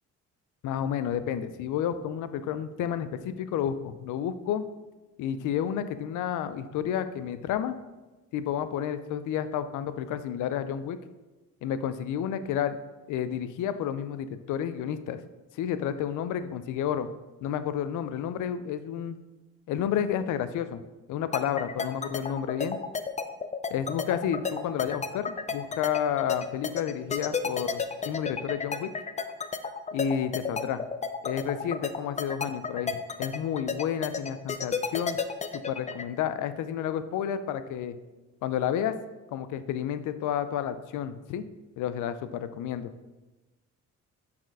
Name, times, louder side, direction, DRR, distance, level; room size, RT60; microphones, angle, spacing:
voice 1, 0.6-4.6 5.2-7.8 8.3-11.0 11.6-12.8 13.1-15.2 15.5-17.1 17.4-19.2 19.7-20.8 21.1-22.8 23.7-27.8 28.1-28.9 29.9-30.8 31.2-35.2 35.5-37.9 38.4-39.0 39.3-41.4 41.8-42.9, left 9 dB, 80° left, 12 dB, 0.5 m, -30 dB
sound 1, 21.3-36.0, left 5 dB, 25° left, 0.5 m, -31 dB
6.3 x 4.3 x 4.7 m, 1.2 s
cardioid pair, 90°, 30 cm